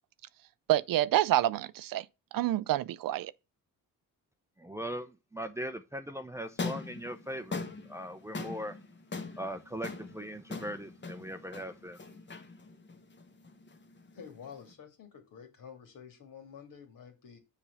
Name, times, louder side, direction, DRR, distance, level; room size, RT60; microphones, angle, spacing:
voice 1, 0.7-2.1 2.3-3.3, right 14 dB, 65° right, 0.5 m, -27 dB
voice 2, 4.6-8.8 9.3-12.0, equal, 10° right, 0.6 m, -40 dB
sound 1, 6.4-14.7, left 3 dB, 30° left, 1.1 m, -42 dB
voice 3, 14.1-17.4, left 7 dB, 60° left, 2.5 m, -49 dB
7.3 x 4.5 x 6.8 m
cardioid pair, 125°, 37 cm